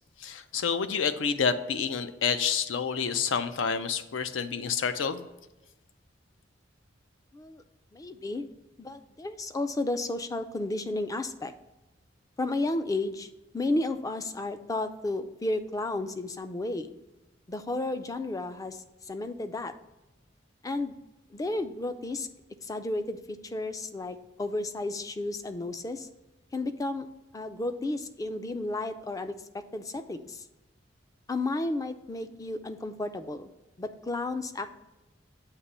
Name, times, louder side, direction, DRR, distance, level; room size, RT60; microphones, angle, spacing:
voice 1, 0.2-5.2, left 6 dB, 80° left, 11 dB, 0.5 m, -28 dB
voice 2, 7.3-7.6 7.9-8.5 8.8-11.5 12.4-16.9 17.5-19.7 20.6-20.9 21.3-22.3 22.6-26.1 26.5-27.1 27.3-30.4 31.3-33.5 33.8-34.7, left 2 dB, 20° left, 10 dB, 0.3 m, -32 dB
8.2 x 2.9 x 5.4 m, 1.1 s
head